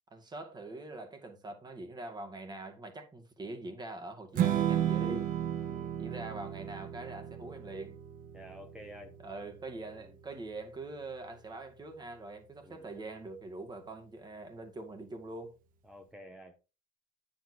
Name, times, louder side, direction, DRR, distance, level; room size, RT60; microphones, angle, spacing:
voice 1, 0.1-5.3 6.0-8.0 9.2-15.5, right 2 dB, 25° right, 2.1 m, -43 dB
Strum, 4.3-10.6, right 10 dB, 50° right, 1.1 m, -34 dB
voice 2, 5.6-5.9 8.3-9.2 10.0-10.2 12.6-12.9 15.8-16.8, equal, 5° right, 1.1 m, -51 dB
9.1 x 7.3 x 2.8 m
supercardioid pair, 95°, 18 cm